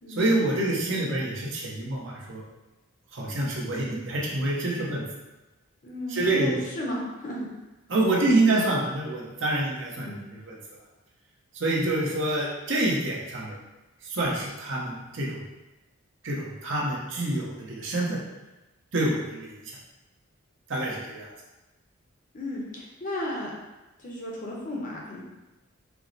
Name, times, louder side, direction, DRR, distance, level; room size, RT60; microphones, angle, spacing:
voice 1, 0.1-2.4 3.1-5.0 6.1-6.6 7.9-10.2 10.4-10.5 11.5-13.6 14.0-15.4 16.2-18.2 18.9-19.8 20.7-21.3, right 2 dB, 55° right, -4 dB, 0.8 m, -27 dB
voice 2, 5.8-7.5 8.0-8.8 10.0-10.3 22.3-23.5 24.0-25.2, left 1 dB, 35° left, -3 dB, 0.7 m, -34 dB
4.6 x 2.1 x 3.9 m, 1.1 s
head